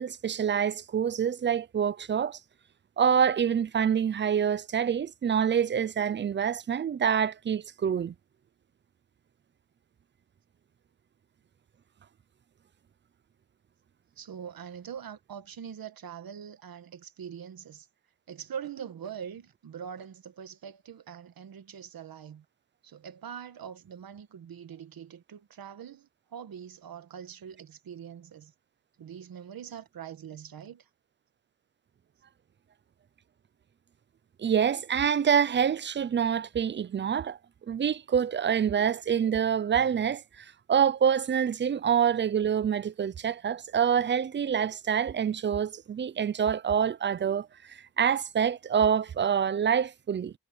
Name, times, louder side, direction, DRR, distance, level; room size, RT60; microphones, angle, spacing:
voice 1, 0.0-2.4 3.0-8.1 34.4-37.4 37.7-50.3, right 8 dB, 30° right, 0.4 m, -26 dB
voice 2, 14.1-17.9 18.3-22.4 22.8-28.5 29.0-30.9, right 8 dB, 70° right, 1.5 m, -43 dB
wide cardioid pair, 175°, 37 cm